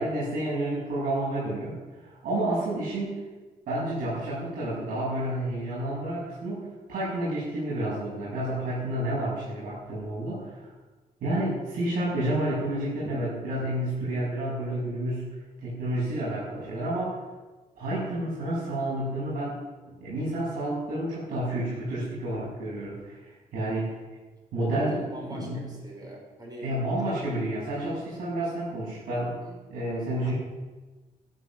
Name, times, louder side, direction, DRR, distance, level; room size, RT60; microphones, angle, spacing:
voice 1, 0.0-3.2 3.7-10.7 11.2-15.3 15.6-17.2 17.8-19.6 20.0-24.0 24.5-25.0 25.3-25.7 26.6-29.4 29.7-30.3, right 1 dB, 80° right, -8 dB, 7.4 m, -30 dB
voice 2, 24.7-27.2 29.3-29.7 30.1-30.3, right 1 dB, 25° right, 0 dB, 4.6 m, -43 dB
16.0 x 13.5 x 6.4 m, 1.3 s
cardioid pair, 150°, 15 cm